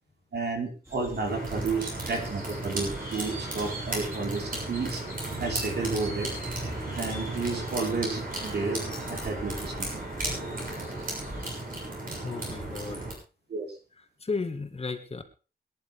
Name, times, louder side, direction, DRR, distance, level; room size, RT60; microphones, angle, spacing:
voice 1, 0.3-5.0 5.4-6.3 6.9-8.8 9.1-9.9 13.5-13.7, right 4 dB, 80° right, 1 dB, 4.5 m, -31 dB
sound 1, 0.8-11.5, equal, 15° right, 4.3 m, -44 dB
sound 2, 1.3-13.1, right 2 dB, 55° right, 7.1 m, -35 dB
voice 2, 12.2-13.1 14.2-15.2, left 4 dB, 35° left, 6 dB, 1.9 m, -34 dB
23.0 x 10.5 x 3.6 m, 0.33 s
wide cardioid pair, 130°, 17 cm